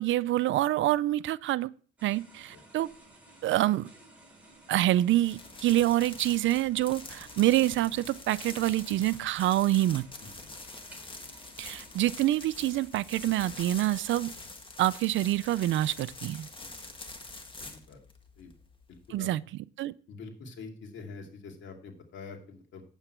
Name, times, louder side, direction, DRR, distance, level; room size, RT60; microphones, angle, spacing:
voice 1, 0.0-1.7 2.0-2.9 3.4-3.9 4.7-10.0 11.6-14.3 14.8-16.5 19.1-19.4 19.8-19.9, right 14 dB, 75° right, 0.5 m, -26 dB
sound 1, 2.0-14.3, right 2 dB, 5° right, 4.4 m, -56 dB
sound 2, 5.2-19.2, left 2 dB, 25° left, 1.6 m, -45 dB
voice 2, 10.2-10.6 16.6-16.7 17.7-18.0 18.4-18.5 18.9-19.3 20.1-22.8, left 4 dB, 70° left, 2.4 m, -45 dB
8.8 x 8.1 x 4.4 m
cardioid pair, 90°, 20 cm